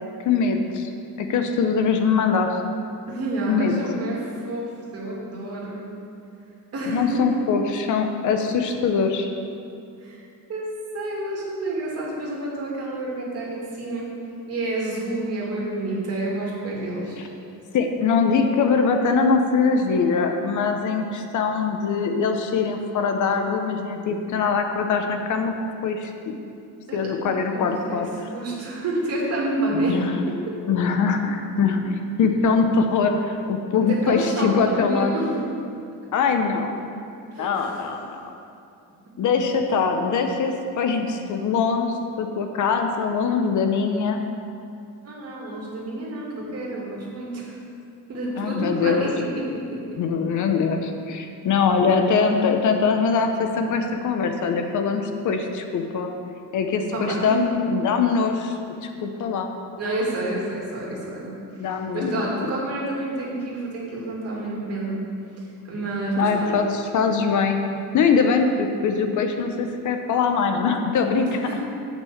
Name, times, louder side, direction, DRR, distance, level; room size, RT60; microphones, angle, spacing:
voice 1, 0.2-0.9 1.2-2.6 3.5-3.8 6.9-9.3 17.7-25.5 25.8-26.4 26.9-28.1 29.7-30.2 30.7-35.1 36.1-36.7 37.4-38.3 39.2-44.2 48.4-49.1 50.0-56.1 56.5-59.5 61.6-62.5 66.1-67.6 67.9-71.5, left 5 dB, 55° left, 5 dB, 0.8 m, -22 dB
voice 2, 3.1-5.8 6.7-7.4 10.0-10.2 10.5-14.1 14.5-17.2 26.9-27.1 27.5-30.0 30.3-30.4 33.9-35.3 37.3-37.8 45.0-47.6 48.1-50.0 56.9-57.4 59.8-65.0 65.7-66.5 71.5-71.6, right 2 dB, 45° right, -4 dB, 2.6 m, -29 dB
7.6 x 6.0 x 7.8 m, 2.6 s
cardioid pair, 150°, 35 cm